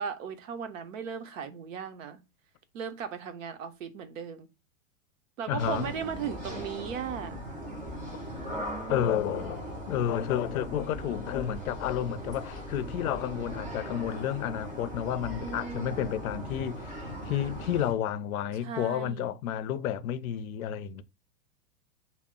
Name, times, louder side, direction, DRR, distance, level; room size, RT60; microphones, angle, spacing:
voice 1, 0.0-2.2 2.7-4.5 5.4-7.4 8.5-9.4 15.4-16.1 18.6-19.3, right 7 dB, 65° right, 0.7 m, -37 dB
voice 2, 5.5-5.9 8.1-8.2 8.9-21.0, left 10 dB, 85° left, 0.5 m, -31 dB
sound 1, 5.6-17.9, equal, 15° right, 0.4 m, -39 dB
2.0 x 2.0 x 3.6 m
supercardioid pair, 155°, 41 cm